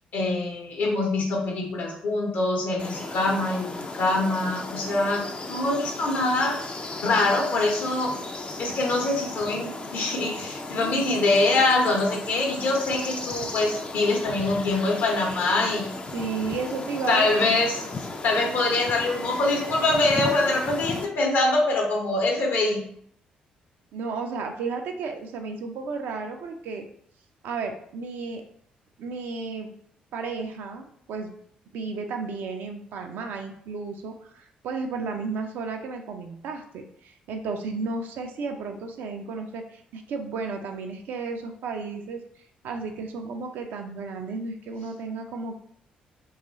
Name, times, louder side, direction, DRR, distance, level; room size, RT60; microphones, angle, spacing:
voice 1, 0.1-5.2 5.5-6.6 7.0-8.1 8.6-15.9 17.1-17.8 18.2-22.8, left 2 dB, 55° left, 1 dB, 0.9 m, -24 dB
sound 1, 2.8-21.1, left 2 dB, 25° left, 0.5 m, -36 dB
voice 2, 10.7-11.0 16.1-17.6 23.9-26.9 27.4-28.4 29.0-29.7 30.1-31.3 31.7-42.2 42.6-45.5, right 4 dB, 55° right, 4 dB, 0.4 m, -33 dB
2.9 x 2.4 x 3.9 m, 0.66 s
figure-of-eight pair, 45°, 4 cm